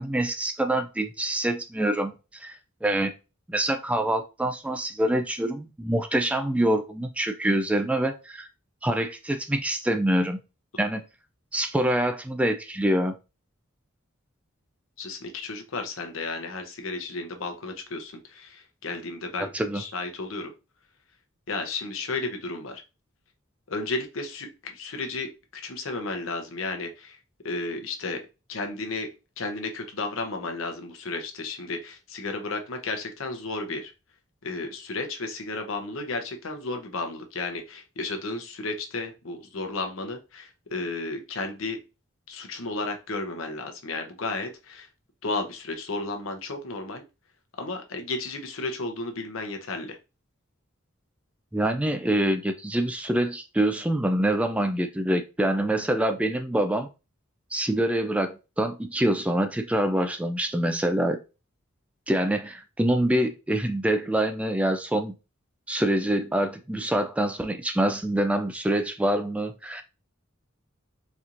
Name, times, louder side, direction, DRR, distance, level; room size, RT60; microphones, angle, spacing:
voice 1, 0.0-2.6 2.8-3.1 3.5-8.5 8.8-10.4 10.8-11.1 11.5-13.1 19.5-19.8 51.5-56.9 57.5-61.2 62.1-65.1 65.7-69.8, right 1 dB, 5° right, 0.3 m, -25 dB
voice 2, 15.0-19.5 19.7-20.5 21.5-22.8 23.7-27.2 27.4-28.2 28.5-29.1 29.4-33.9 34.4-41.8 42.3-44.9 45.2-47.0 47.6-50.0, left 3 dB, 70° left, 0.7 m, -33 dB
4.2 x 2.9 x 2.5 m
head